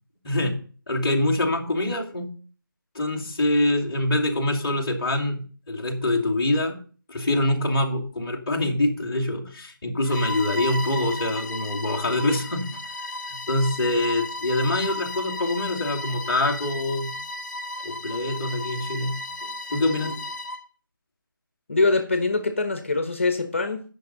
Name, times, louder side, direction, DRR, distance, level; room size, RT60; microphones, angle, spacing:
voice 1, 0.2-0.6 0.9-2.3 2.9-5.4 5.7-6.8 7.1-12.7 13.3-17.1 17.8-20.2, left 1 dB, 15° left, -6 dB, 1.3 m, -25 dB
Bowed string instrument, 10.0-20.7, left 2 dB, 50° left, 1.0 m, -34 dB
voice 2, 21.7-23.8, left 3 dB, 35° left, 7 dB, 1.3 m, -23 dB
18.0 x 6.5 x 4.0 m, 0.40 s
figure-of-eight pair, 180°, 12 cm